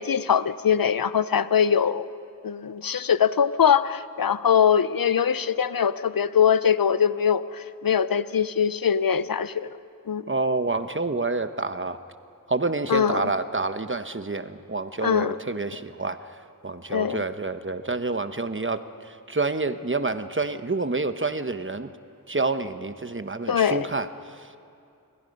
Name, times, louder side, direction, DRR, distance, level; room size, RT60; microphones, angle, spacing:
voice 1, 0.0-2.1 2.4-9.7 10.1-10.2 12.9-13.3 15.0-15.4 16.9-17.2 23.5-23.9, left 7 dB, 80° left, 0.7 m, -22 dB
voice 2, 10.3-12.0 12.5-16.2 16.6-21.9 22.3-24.1 24.4-24.6, right 3 dB, 35° right, 1.0 m, -28 dB
29.0 x 22.5 x 5.4 m
wide cardioid pair, 50°, 34 cm